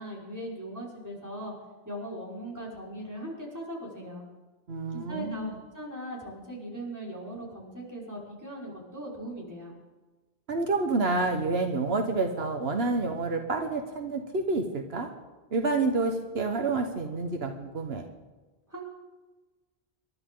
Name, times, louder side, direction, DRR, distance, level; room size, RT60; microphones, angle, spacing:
voice 1, 0.0-1.5 1.8-4.2 4.9-9.8 18.7-18.8, right 1 dB, 15° right, -5 dB, 4.9 m, -39 dB
voice 2, 4.7-5.6 10.5-15.1 15.5-18.0, right 3 dB, 80° right, 4 dB, 1.5 m, -28 dB
27.5 x 12.5 x 3.9 m, 1.2 s
omnidirectional pair, 1.0 m